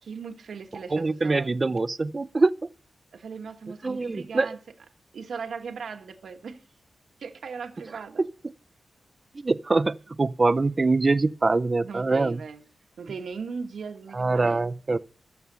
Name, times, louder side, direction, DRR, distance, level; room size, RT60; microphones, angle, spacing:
voice 1, 0.0-1.5 3.1-4.6 5.1-6.6 7.2-8.2 11.8-12.6 13.0-14.6, right 5 dB, 75° right, 1.4 m, -38 dB
voice 2, 0.9-2.5 3.8-4.5 9.3-12.4 14.1-15.0, right 3 dB, 25° right, 0.4 m, -24 dB
12.5 x 7.3 x 6.7 m
wide cardioid pair, 160°, 0 cm